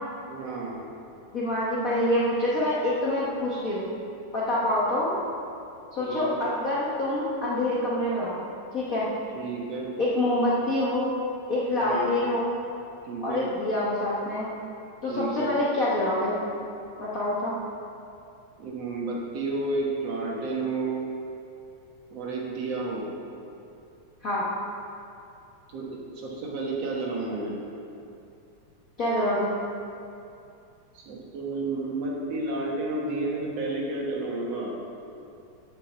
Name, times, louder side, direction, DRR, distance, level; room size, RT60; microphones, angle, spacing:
voice 1, 0.3-0.8 6.0-6.4 9.3-9.9 11.8-12.2 13.1-13.5 15.1-15.6 18.6-21.0 22.1-23.0 25.7-27.5 30.9-34.8, right 3 dB, 65° right, -3 dB, 2.2 m, -31 dB
voice 2, 1.3-3.9 4.3-5.1 5.9-8.4 8.7-9.1 10.0-11.1 11.5-12.6 13.2-14.5 15.0-16.4 17.0-17.6 24.2-24.5 29.0-29.5, left 1 dB, 50° left, -8 dB, 1.0 m, -26 dB
7.5 x 6.3 x 7.1 m, 2.6 s
omnidirectional pair, 3.3 m